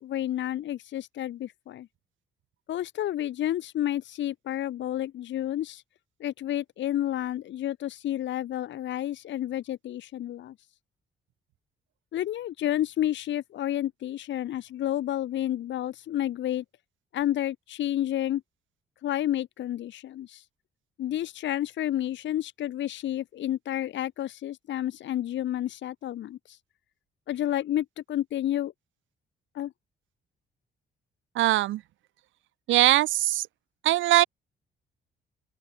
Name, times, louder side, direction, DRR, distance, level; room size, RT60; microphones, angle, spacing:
voice 1, 0.0-1.9 2.7-5.8 6.2-10.5 12.1-16.6 17.1-18.4 19.0-20.4 21.0-26.6 27.3-28.7 29.5-29.7, left 12 dB, 70° left, 1.0 m, -30 dB
voice 2, 31.4-31.8 32.7-33.5 33.8-34.3, right 15 dB, 75° right, 0.6 m, -21 dB
open air
cardioid pair, 90°, 20 cm